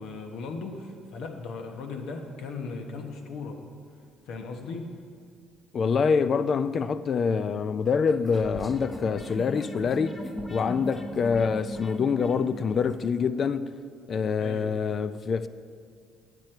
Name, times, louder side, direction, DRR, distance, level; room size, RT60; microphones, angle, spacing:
voice 1, 0.0-3.6 4.3-4.9 14.4-14.7, left 4 dB, 70° left, 1.1 m, -37 dB
voice 2, 5.7-10.2 10.5-13.7 14.1-15.5, left 5 dB, 45° left, 0.4 m, -25 dB
sound 1, 8.1-13.0, left 1 dB, 15° left, 0.8 m, -39 dB
9.0 x 8.2 x 4.4 m
supercardioid pair, 85°, 0 cm